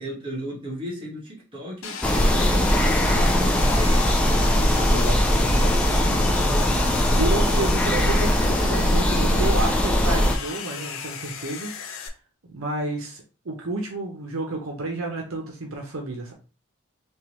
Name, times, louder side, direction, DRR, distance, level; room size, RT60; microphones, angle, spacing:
voice 1, 0.0-7.5, left 1 dB, 25° right, 1.5 m, -35 dB
Sawing, 1.8-12.1, left 7 dB, 60° left, 0.6 m, -35 dB
sound 1, 2.0-10.4, equal, 5° left, 0.4 m, -20 dB
voice 2, 6.4-6.8 7.2-12.0 12.5-16.3, right 2 dB, 70° right, 0.8 m, -31 dB
3.6 x 2.9 x 3.0 m
head